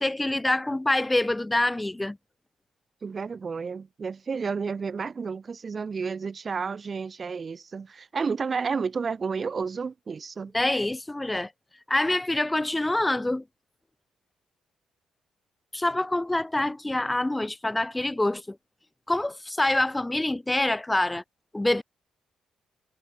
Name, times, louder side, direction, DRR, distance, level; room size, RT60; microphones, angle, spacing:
voice 1, 0.0-2.2 10.5-11.5 11.9-13.4 15.7-18.6 19.1-21.2 21.5-21.8, left 1 dB, 15° left, 7.4 m, -26 dB
voice 2, 3.0-10.5, right 5 dB, 40° right, 5.4 m, -31 dB
hypercardioid pair, 45°, 0 cm